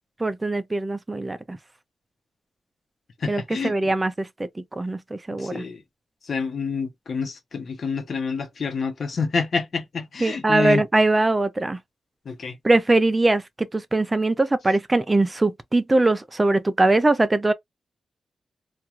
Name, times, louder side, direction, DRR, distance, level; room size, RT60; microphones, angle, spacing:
voice 1, 0.2-1.6 3.3-4.3 4.7-5.7 10.2-11.8 12.6-17.5, right 2 dB, 15° right, 0.3 m, -21 dB
voice 2, 3.2-4.0 5.4-5.8 6.2-10.8 12.3-12.6, left 5 dB, 45° left, 0.7 m, -28 dB
2.4 x 2.3 x 2.8 m
wide cardioid pair, 180°, 0 cm